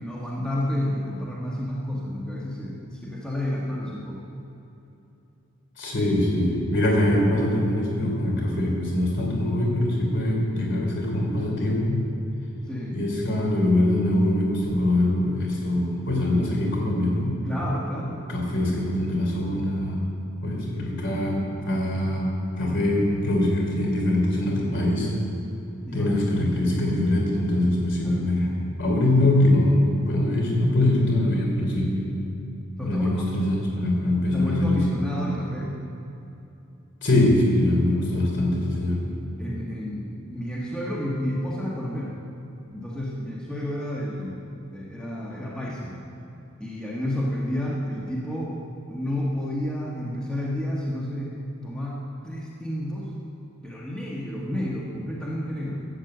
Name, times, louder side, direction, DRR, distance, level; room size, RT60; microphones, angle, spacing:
voice 1, 0.0-4.2 12.7-13.0 17.4-18.2 20.7-20.8 25.9-26.1 28.0-28.3 32.7-33.3 34.3-35.8 39.4-42.2 42.7-46.0 46.6-48.6 48.9-51.3 51.6-53.1 53.6-55.9, left 1 dB, 5° left, -5 dB, 1.3 m, -30 dB
voice 2, 5.8-12.0 12.9-17.3 18.3-20.0 20.4-22.3 22.6-25.1 25.9-28.5 28.8-32.0 32.8-34.8 37.0-39.0, left 1 dB, 55° left, -1 dB, 3.3 m, -23 dB
13.0 x 8.3 x 7.9 m, 2.9 s
head